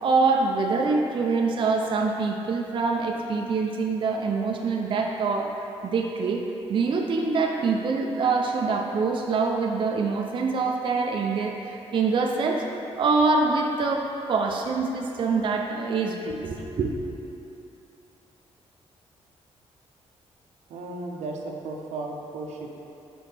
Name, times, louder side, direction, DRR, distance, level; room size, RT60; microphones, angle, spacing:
voice 1, 0.0-5.5 5.8-6.4 6.7-12.6 13.0-16.9, right 4 dB, 50° right, 1 dB, 0.4 m, -25 dB
voice 2, 20.7-22.7, right 2 dB, 85° right, 1 dB, 0.6 m, -35 dB
6.2 x 4.9 x 3.3 m, 2.8 s
cardioid pair, 125°, 11 cm